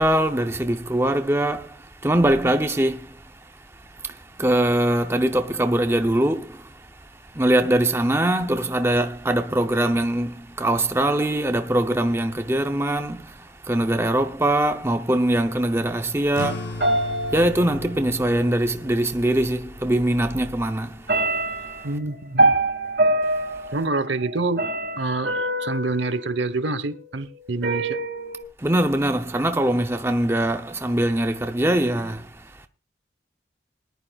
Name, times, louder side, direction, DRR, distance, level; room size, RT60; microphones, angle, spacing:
voice 1, 0.0-21.9 23.3-23.7 28.6-32.7, right 1 dB, 15° right, 0.6 m, -23 dB
sound 1, 16.3-21.4, left 2 dB, 70° left, 0.8 m, -38 dB
sound 2, 16.8-18.3 19.4-19.5 20.0-20.6 21.1-27.0 27.6-28.4, right 2 dB, 60° right, 2.2 m, -25 dB
voice 2, 21.8-22.6 23.7-24.6 25.0-28.0, right 3 dB, 75° right, 1.0 m, -27 dB
20.5 x 11.5 x 2.3 m
head